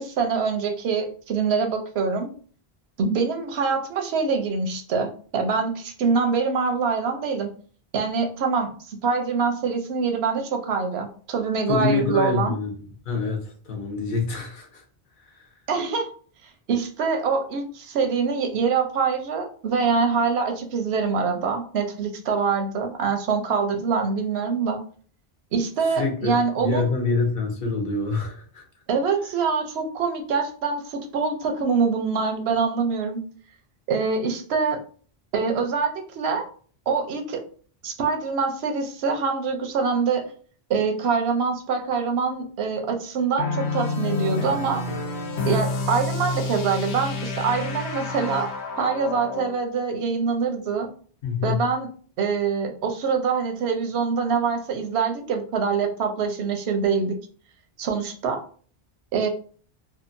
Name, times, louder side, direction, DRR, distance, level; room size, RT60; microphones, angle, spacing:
voice 1, 0.0-2.3 3.0-7.5 7.9-12.5 15.7-16.1 16.7-24.8 25.5-26.9 28.9-33.2 33.9-34.8 35.3-36.5 36.9-37.4 37.8-40.3 40.7-44.8 45.4-48.5 48.8-50.9 51.4-51.9 52.2-57.2 57.8-58.4 59.1-59.3, right 5 dB, 85° right, 5 dB, 0.8 m, -24 dB
voice 2, 11.7-12.7 13.0-14.8 15.3-15.5 25.8-28.6 51.2-51.6, left 4 dB, 55° left, 1 dB, 0.8 m, -26 dB
sound 1, 43.4-49.6, left 3 dB, 85° left, 0.8 m, -29 dB
2.7 x 2.3 x 2.5 m, 0.44 s
omnidirectional pair, 1.1 m